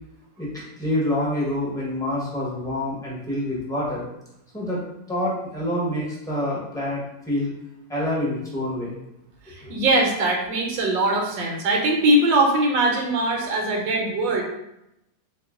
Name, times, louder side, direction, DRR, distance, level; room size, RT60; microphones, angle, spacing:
voice 1, 0.4-4.1 4.5-4.8 5.1-7.5 7.9-8.9 9.6-9.7, left 1 dB, 5° left, -6 dB, 0.8 m, -27 dB
voice 2, 9.5-14.4, right 1 dB, 80° right, 0 dB, 1.4 m, -21 dB
3.7 x 2.9 x 3.6 m, 0.85 s
omnidirectional pair, 2.0 m